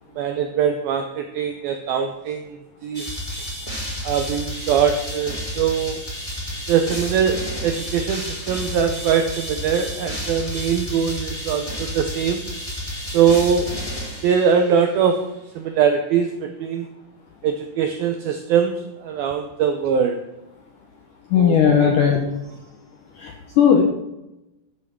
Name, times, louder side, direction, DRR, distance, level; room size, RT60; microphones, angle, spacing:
voice 1, 0.2-2.6 2.8-3.1 4.0-6.0 6.7-12.4 13.1-13.7 14.2-16.9 17.4-20.2 21.4-21.9, right 7 dB, 85° right, 6 dB, 2.1 m, -22 dB
sound 1, 2.9-14.8, equal, 10° left, 3.1 m, -31 dB
voice 2, 21.3-22.2 23.2-23.8, left 8 dB, 75° left, 2 dB, 1.9 m, -16 dB
12.0 x 8.1 x 6.2 m, 0.95 s
omnidirectional pair, 5.3 m